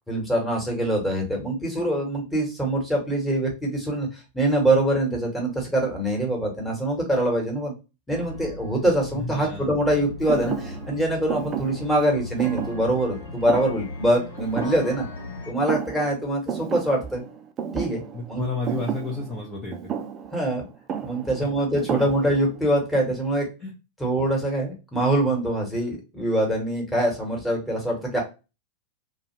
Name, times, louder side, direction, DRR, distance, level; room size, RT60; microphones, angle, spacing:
voice 1, 0.1-7.7 8.1-15.1 15.5-17.2 17.7-18.0 18.3-18.5 20.3-20.6 21.0-23.5 24.0-28.2, right 1 dB, 5° left, -2 dB, 1.3 m, -24 dB
sound 1, 8.1-15.5, left 2 dB, 75° left, 0.9 m, -38 dB
voice 2, 9.1-9.7 18.1-19.8 23.6-23.7, left 3 dB, 25° left, -2 dB, 0.7 m, -31 dB
Thump thud, 10.3-15.3 15.6-16.2 16.5-22.6, right 8 dB, 30° right, 0.4 m, -33 dB
2.4 x 2.4 x 3.1 m, 0.28 s
figure-of-eight pair, 90°, 0 cm